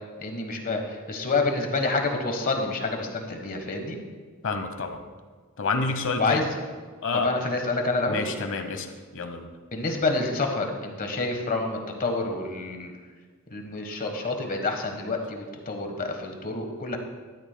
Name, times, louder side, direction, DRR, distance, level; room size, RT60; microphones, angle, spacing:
voice 1, 0.2-4.0 6.2-6.5 7.1-8.2 9.7-12.9 13.5-17.0, left 3 dB, 40° left, 4 dB, 1.2 m, -28 dB
voice 2, 4.4-5.0 5.6-6.5 7.0-7.3 8.1-9.5, left 3 dB, 60° left, 7 dB, 0.9 m, -29 dB
13.0 x 12.0 x 2.2 m, 1.5 s
head